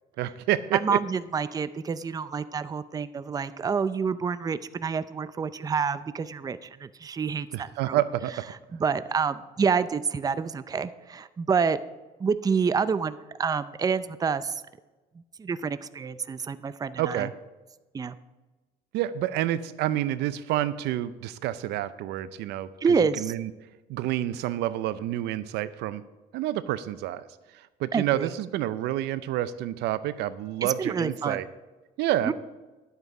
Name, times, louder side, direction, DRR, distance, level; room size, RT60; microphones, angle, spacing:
voice 1, 0.2-1.0 7.5-8.4 17.0-17.3 18.9-22.7 23.0-23.5 23.9-26.0 26.3-27.3 27.5-31.5 32.0-32.3, right 13 dB, 85° right, 15 dB, 0.6 m, -28 dB
voice 2, 0.7-8.0 8.7-11.8 12.2-14.5 15.4-17.3 17.9-18.2 22.8-23.3 27.9-28.3 30.6-31.4 32.2-32.3, right 5 dB, 20° right, 14 dB, 0.5 m, -28 dB
11.5 x 8.1 x 4.8 m, 1.2 s
cardioid pair, 110°, 17 cm